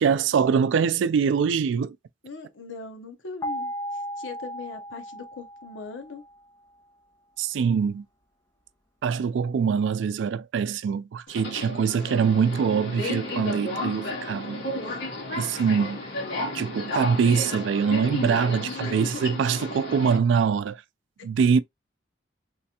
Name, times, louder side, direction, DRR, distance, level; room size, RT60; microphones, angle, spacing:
voice 1, 0.0-2.0 7.4-8.0 9.0-14.7 15.4-16.0 16.5-20.8 21.2-21.6, right 6 dB, 75° right, 0.3 m, -23 dB
voice 2, 2.2-6.2 18.5-19.3 21.2-21.3, left 5 dB, 85° left, 0.8 m, -40 dB
sound 1, 3.4-6.4, equal, 15° left, 1.0 m, -35 dB
Subway metro underground, 11.3-20.2, left 1 dB, 65° left, 1.7 m, -33 dB
3.3 x 3.2 x 2.8 m
head